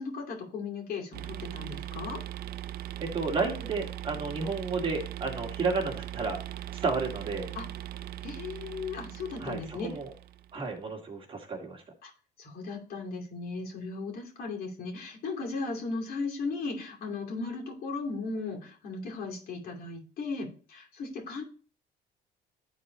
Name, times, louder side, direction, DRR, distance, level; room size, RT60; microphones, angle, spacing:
voice 1, 0.0-2.2 7.5-7.6 8.2-9.9 12.0-12.1 12.4-21.4, left 4 dB, 65° left, 0 dB, 2.6 m, -36 dB
sound 1, 1.1-10.6, right 13 dB, 70° right, 0.4 m, -40 dB
voice 2, 3.0-6.4 6.7-7.5 9.4-10.1 10.5-11.8, right 4 dB, 30° right, 2 dB, 1.9 m, -32 dB
11.0 x 4.2 x 3.1 m, 0.40 s
cardioid pair, 110°, 17 cm